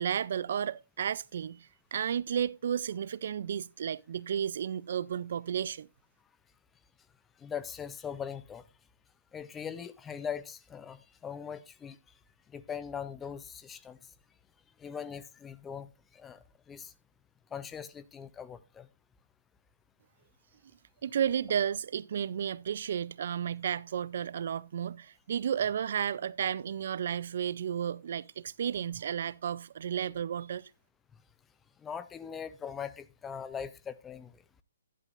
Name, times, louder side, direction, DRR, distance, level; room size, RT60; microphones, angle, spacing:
voice 1, 0.0-5.9 21.0-30.7, right 8 dB, 55° right, 0.5 m, -33 dB
voice 2, 7.4-8.6 9.3-12.0 12.5-14.0 14.8-16.9 17.5-18.9 31.8-34.4, left 7 dB, 10° left, 0.5 m, -41 dB
11.5 x 11.0 x 2.5 m
hypercardioid pair, 155°, 0 cm